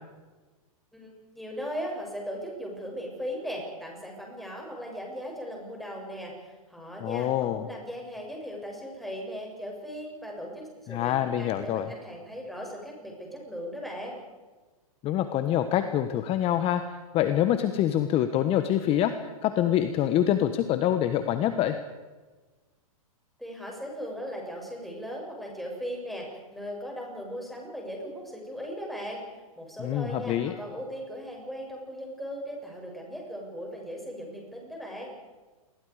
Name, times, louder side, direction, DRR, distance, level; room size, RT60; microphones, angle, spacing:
voice 1, 0.9-14.2 23.4-29.2 29.6-35.1, equal, ahead, -1 dB, 7.5 m, -38 dB
voice 2, 7.0-7.7 10.9-11.9 15.0-19.1 19.4-21.8 29.8-30.5, left 11 dB, 30° left, 9 dB, 1.3 m, -25 dB
27.5 x 22.0 x 5.0 m, 1.3 s
hypercardioid pair, 125°, 19 cm